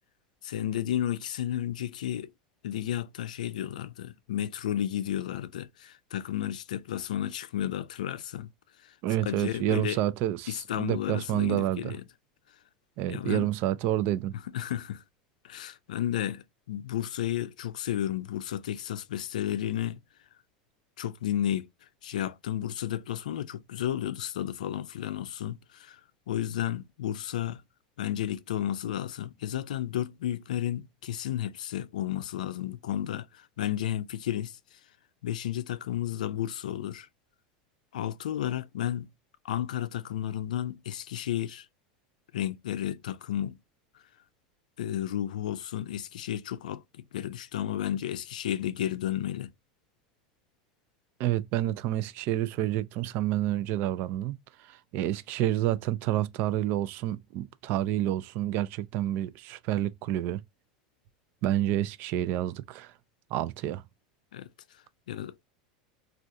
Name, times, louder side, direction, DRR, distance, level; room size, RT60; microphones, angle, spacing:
voice 1, 0.4-2.3 2.6-8.5 8.8-8.9 9.3-10.0 10.5-12.0 13.1-13.5 14.5-15.0 15.4-20.0 21.0-21.7 22.0-26.0 26.3-27.6 28.0-34.6 35.2-37.1 37.9-39.1 39.4-41.7 42.3-43.6 44.8-49.5 64.3-64.5 65.1-65.3, left 11 dB, 90° left, 0.4 m, -32 dB
voice 2, 9.0-11.9 13.0-14.4 51.2-54.3 54.6-60.4 61.4-62.9 63.3-63.8, right 13 dB, 55° right, 0.4 m, -29 dB
3.4 x 2.4 x 2.6 m
supercardioid pair, 105°, 4 cm